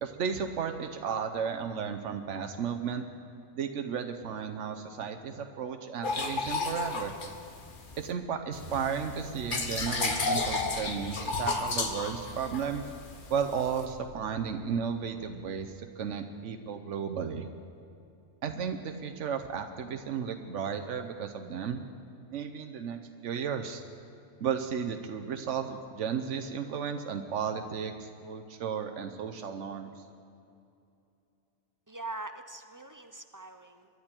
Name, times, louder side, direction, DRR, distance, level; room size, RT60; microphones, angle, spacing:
voice 1, 0.0-3.1 3.5-7.1 8.0-12.8 13.3-17.5 18.4-21.8 22.3-23.8 24.4-29.9, right 7 dB, 85° right, 6 dB, 1.1 m, -34 dB
sound 1, 6.0-8.1 8.5-13.8, left 3 dB, 45° left, 1.2 m, -32 dB
sound 2, 8.5-15.7, equal, 55° right, 1.5 m, -48 dB
voice 2, 31.9-33.9, right 2 dB, 30° right, 8 dB, 0.4 m, -42 dB
23.5 x 11.0 x 4.4 m, 2.6 s
omnidirectional pair, 1.2 m